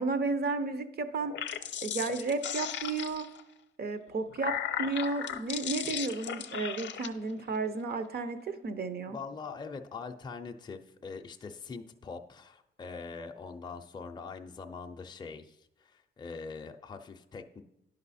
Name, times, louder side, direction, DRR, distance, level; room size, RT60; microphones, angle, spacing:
voice 1, 0.0-1.3 1.8-3.3 3.8-4.5 4.8-9.2, right 3 dB, 50° right, 10 dB, 0.7 m, -33 dB
sound 1, 1.2-3.4 4.1-7.1, left 9 dB, 60° left, 0.6 m, -36 dB
voice 2, 9.1-17.6, left 4 dB, 20° left, 4 dB, 0.5 m, -43 dB
10.5 x 5.4 x 4.1 m, 0.84 s
wide cardioid pair, 135°, 21 cm